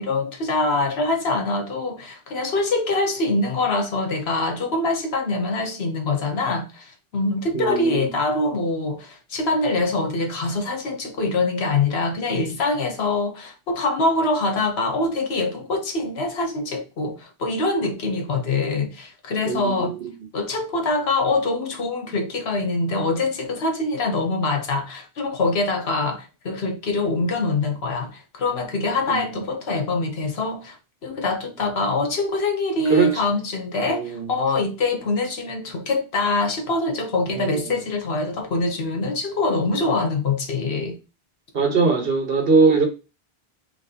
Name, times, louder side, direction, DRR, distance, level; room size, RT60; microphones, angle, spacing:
voice 1, 0.0-19.9 20.3-30.8 31.0-41.0, left 2 dB, 75° left, 1.2 m, -24 dB
voice 2, 7.5-8.1 19.4-20.1 29.1-29.2 32.9-33.1 33.9-34.3 37.3-37.7 41.5-42.9, right 4 dB, 60° right, 1.4 m, -21 dB
5.7 x 3.0 x 2.8 m
omnidirectional pair, 1.1 m